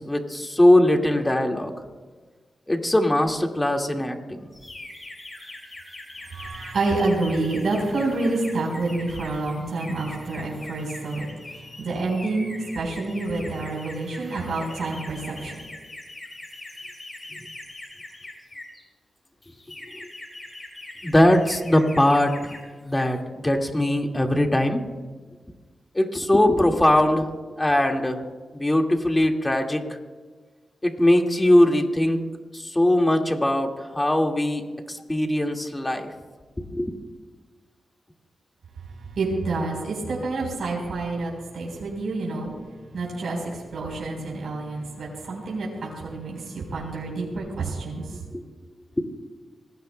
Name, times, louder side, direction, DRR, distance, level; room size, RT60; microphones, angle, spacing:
voice 1, 0.0-1.7 2.7-4.4 21.0-22.6 22.8-24.9 25.9-27.3 27.6-28.2 28.5-29.8 30.8-32.2 32.5-36.1 36.6-37.0 48.3-48.4 49.0-49.1, left 1 dB, 15° left, 3 dB, 1.9 m, -21 dB
sound 1, 4.5-18.8 19.4-22.6 22.9-23.2, left 2 dB, 35° left, 4.0 m, -42 dB
voice 2, 6.2-15.6 38.8-42.6 42.9-48.2, right 2 dB, 75° right, -3 dB, 4.1 m, -28 dB
26.0 x 19.0 x 2.2 m, 1.4 s
cardioid pair, 80°, 0 cm